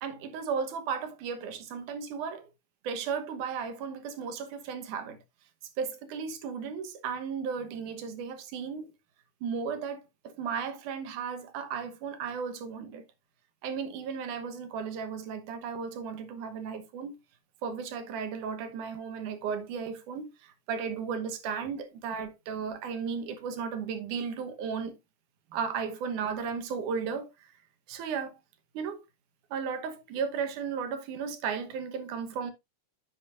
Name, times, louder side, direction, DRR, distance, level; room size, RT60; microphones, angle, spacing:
voice 1, 0.0-2.5 2.8-5.2 5.8-8.9 9.4-13.0 13.6-17.2 17.6-25.0 25.5-27.3 27.9-28.4 28.7-29.0 29.5-32.5, right 6 dB, 75° right, 2.7 m, -35 dB
9.9 x 7.1 x 2.5 m
omnidirectional pair, 3.6 m